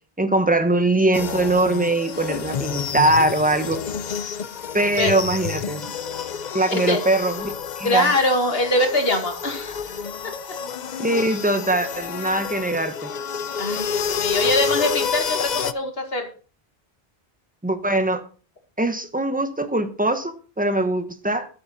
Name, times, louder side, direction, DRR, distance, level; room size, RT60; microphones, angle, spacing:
voice 1, 0.2-3.8 4.7-5.9 6.5-8.1 11.0-13.1 17.6-18.2 18.8-21.5, right 2 dB, 10° right, 8 dB, 1.1 m, -22 dB
sound 1, 1.1-15.7, left 7 dB, 50° left, 0.7 m, -29 dB
voice 2, 6.7-7.0 7.8-9.8 13.6-16.3, left 2 dB, 70° left, 4 dB, 2.4 m, -23 dB
12.5 x 8.9 x 4.2 m, 0.39 s
omnidirectional pair, 1.0 m